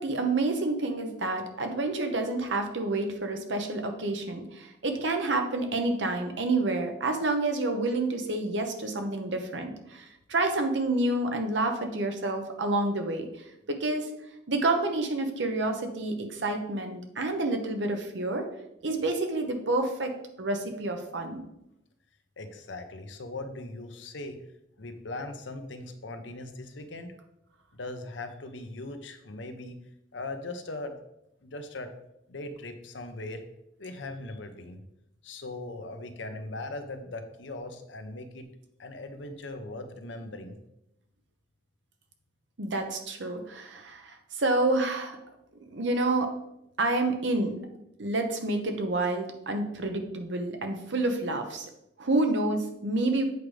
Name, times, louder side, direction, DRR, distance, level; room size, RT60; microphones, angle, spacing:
voice 1, 0.0-13.3 13.7-14.1 14.5-18.5 18.8-20.1 20.4-21.4 42.6-45.2 45.7-46.3 46.8-47.6 48.0-51.7 52.0-53.2, right 2 dB, 80° right, 5 dB, 0.9 m, -28 dB
voice 2, 22.4-24.4 24.8-27.2 27.7-29.8 30.1-30.9 31.4-31.9 32.3-33.4 33.8-34.8 35.2-38.4 38.8-40.6, left 2 dB, 80° left, 7 dB, 0.8 m, -39 dB
8.0 x 4.9 x 3.3 m, 0.83 s
head